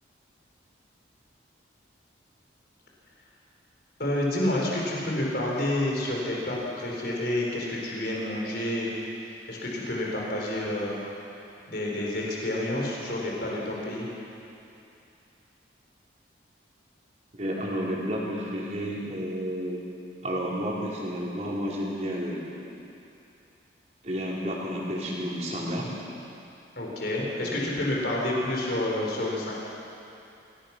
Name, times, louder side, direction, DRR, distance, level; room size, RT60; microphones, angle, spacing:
voice 1, 4.0-8.9 9.2-11.0 11.7-14.1 26.8-29.5, left 1 dB, 55° left, -3 dB, 4.6 m, -29 dB
voice 2, 17.4-19.8 20.2-22.5 24.0-25.9 27.4-27.7, equal, 40° right, -5 dB, 4.6 m, -31 dB
27.0 x 18.5 x 6.2 m, 2.8 s
head